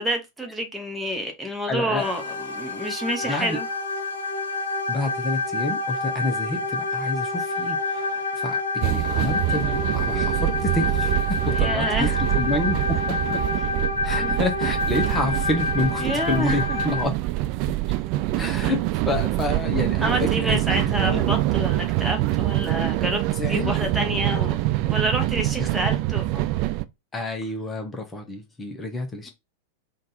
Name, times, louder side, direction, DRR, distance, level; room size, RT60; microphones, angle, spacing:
voice 1, 0.0-3.7 11.5-12.6 12.9-13.0 14.2-14.4 16.0-16.8 18.6-18.8 20.0-23.2 23.5-26.5, right 1 dB, 5° right, 1.0 m, -29 dB
voice 2, 1.7-2.1 3.2-3.6 4.9-12.1 12.3-13.0 13.3-13.4 14.0-17.1 17.9-18.0 18.4-21.3 23.3-24.5 25.6-25.7 27.1-29.3, left 2 dB, 15° left, 0.9 m, -29 dB
sound 1, 2.0-17.0, left 3 dB, 70° left, 0.9 m, -28 dB
sound 2, 8.8-26.8, right 17 dB, 45° right, 0.3 m, -25 dB
3.8 x 2.5 x 4.1 m
figure-of-eight pair, 90°, 0 cm